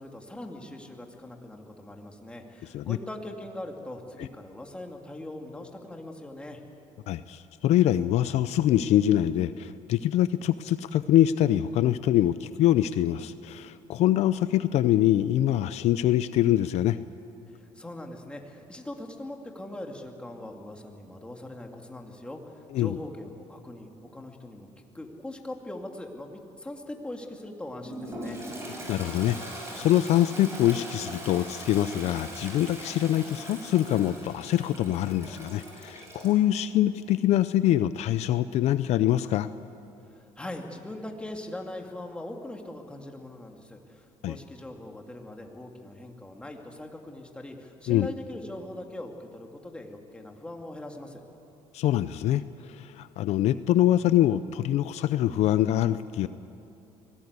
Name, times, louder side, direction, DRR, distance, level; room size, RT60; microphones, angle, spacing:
voice 1, 0.0-6.6 17.5-24.7 24.9-28.4 40.1-51.2, left 1 dB, 10° left, 2 dB, 2.5 m, -41 dB
voice 2, 7.1-17.0 22.7-23.0 28.9-39.5 44.2-44.4 47.9-48.1 51.7-56.3, left 12 dB, 65° left, 13 dB, 0.6 m, -24 dB
Toilet flush, 27.8-36.4, right 1 dB, 20° right, 6.4 m, -41 dB
24.5 x 18.5 x 8.3 m, 2.7 s
cardioid pair, 115°, 12 cm